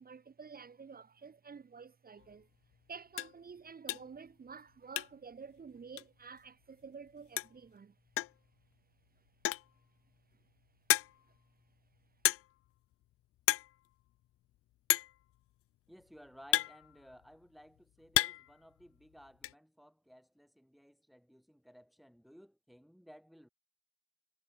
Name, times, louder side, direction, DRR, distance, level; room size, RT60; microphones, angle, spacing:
voice 1, 0.0-2.5 2.9-7.9 11.2-11.4, right 5 dB, 30° right, 2.2 m, -50 dB
sound 1, 2.2-2.3 2.7-2.8 3.1-3.4 3.9-4.2 4.5-5.3 5.6-5.7 6.0-6.1 7.1-7.2 7.4-7.7 8.2-8.5 9.3-9.8 10.3-10.4 10.9-11.4 12.2-12.7 12.9-13.1 13.4-13.8 14.0-14.1 14.9-15.2 16.0-17.3 17.8-18.6 18.8-19.5, left 15 dB, 45° left, 0.7 m, -32 dB
voice 2, 15.9-23.5, equal, ahead, 3.5 m, -58 dB
figure-of-eight pair, 50°, 32 cm